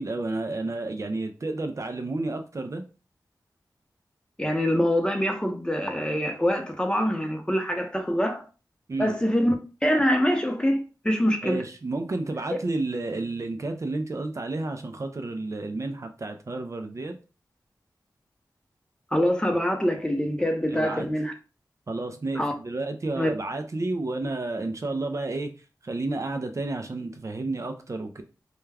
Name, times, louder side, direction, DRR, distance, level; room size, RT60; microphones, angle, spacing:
voice 1, 0.0-2.8 8.9-9.1 11.4-17.1 20.7-21.1 21.9-25.5 25.8-28.2, right 2 dB, 45° right, 0.4 m, -31 dB
voice 2, 4.4-8.4 9.0-9.6 9.8-11.6 19.1-21.3 22.4-22.5 23.2-23.3, equal, 10° left, 0.6 m, -24 dB
2.3 x 2.2 x 3.3 m
cardioid pair, 50°, 7 cm